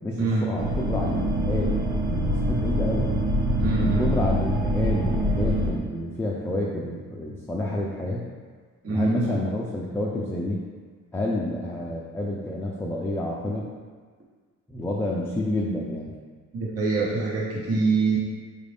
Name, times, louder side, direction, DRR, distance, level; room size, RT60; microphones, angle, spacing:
voice 1, 0.0-3.1 3.8-8.2 8.9-10.6 11.1-13.6 14.7-16.1, left 1 dB, 10° left, -4 dB, 0.4 m, -29 dB
sound 1, 0.6-5.7, equal, 90° right, 0.7 m, -24 dB
voice 2, 3.6-4.3 8.8-9.4 16.5-18.2, right 3 dB, 50° right, -5 dB, 1.1 m, -25 dB
4.6 x 2.5 x 3.5 m, 1.5 s
cardioid pair, 90°, 30 cm